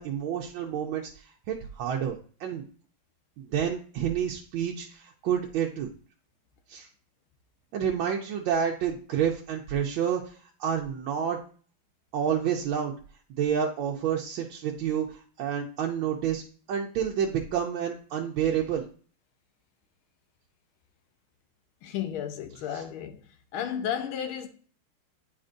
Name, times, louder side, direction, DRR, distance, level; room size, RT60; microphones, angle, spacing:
voice 1, 0.0-2.6 3.5-5.9 6.7-6.9 7.7-11.4 12.1-12.9 13.4-16.4 16.7-18.8 22.7-22.8, right 8 dB, 80° right, 1.4 m, -29 dB
voice 2, 21.8-23.2 23.5-24.5, left 9 dB, 85° left, 1.6 m, -33 dB
9.6 x 4.3 x 2.6 m
omnidirectional pair, 2.3 m